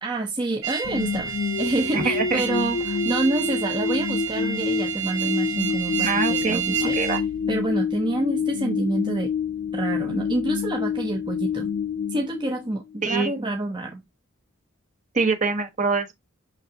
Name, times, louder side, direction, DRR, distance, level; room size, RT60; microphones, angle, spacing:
voice 1, 0.0-7.0 7.5-9.3 9.7-11.7 12.1-14.0, right 2 dB, 20° right, 0.7 m, -27 dB
sound 1, 0.6-7.2, right 9 dB, 65° right, 1.7 m, -30 dB
sound 2, 0.8-13.0, left 6 dB, 55° left, 0.3 m, -28 dB
voice 2, 1.9-2.4 6.0-7.2 13.0-13.3 15.1-16.1, right 4 dB, 35° right, 1.2 m, -24 dB
6.0 x 5.9 x 2.8 m
head